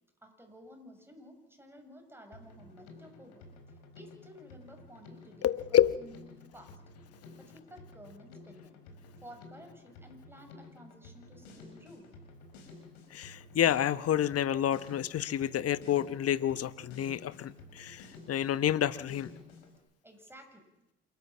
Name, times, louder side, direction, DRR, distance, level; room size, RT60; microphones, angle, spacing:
voice 1, 0.2-3.5 3.9-6.3 6.5-6.8 7.3-8.8 9.2-12.1 20.0-20.7, equal, 10° right, 4 dB, 7.1 m, -53 dB
Drum kit, 2.3-19.8, left 3 dB, 80° left, 4.6 m, -53 dB
voice 2, 5.4-5.9 13.1-19.3, left 10 dB, 50° left, 16 dB, 1.1 m, -29 dB
27.5 x 13.0 x 7.5 m, 0.91 s
hypercardioid pair, 60°, 30 cm